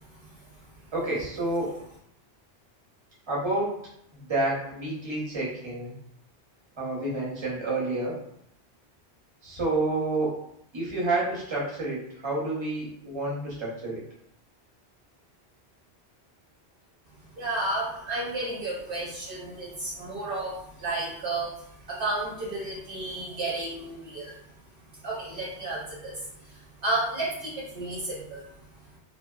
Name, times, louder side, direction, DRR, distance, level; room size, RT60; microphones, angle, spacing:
voice 1, 0.9-1.8 3.3-3.8 4.3-5.9 6.8-8.2 9.4-10.4 10.7-14.0, right 2 dB, 30° right, -5 dB, 0.7 m, -29 dB
voice 2, 17.4-24.4 24.9-28.5, right 2 dB, 60° right, -5 dB, 0.7 m, -32 dB
2.7 x 2.1 x 2.3 m, 0.72 s
omnidirectional pair, 1.1 m